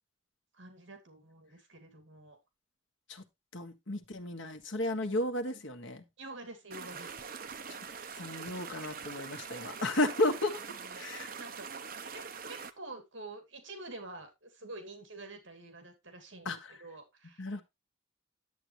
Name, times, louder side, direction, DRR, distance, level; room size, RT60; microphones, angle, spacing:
voice 1, 0.5-2.4 5.0-5.2 6.2-7.1 10.6-11.0 11.4-11.7 12.1-17.5, right 2 dB, 70° right, 2.5 m, -48 dB
voice 2, 3.5-6.0 7.7-7.8 8.2-10.6 11.0-11.3 16.4-16.6 17.4-17.6, left 1 dB, 70° left, 1.6 m, -33 dB
sound 1, 6.7-12.7, right 6 dB, 45° right, 0.8 m, -43 dB
11.0 x 7.9 x 3.1 m
head